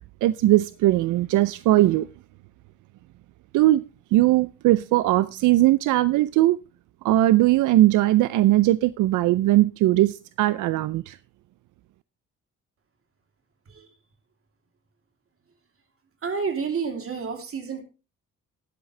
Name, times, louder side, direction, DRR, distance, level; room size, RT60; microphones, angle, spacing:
voice 1, 0.2-2.1 3.5-3.8 4.1-6.6 7.0-11.2, right 16 dB, 80° right, 16 dB, 0.5 m, -19 dB
voice 2, 16.2-17.8, right 5 dB, 45° right, 5 dB, 3.1 m, -29 dB
13.0 x 10.5 x 3.3 m, 0.31 s
cardioid pair, 90°, 30 cm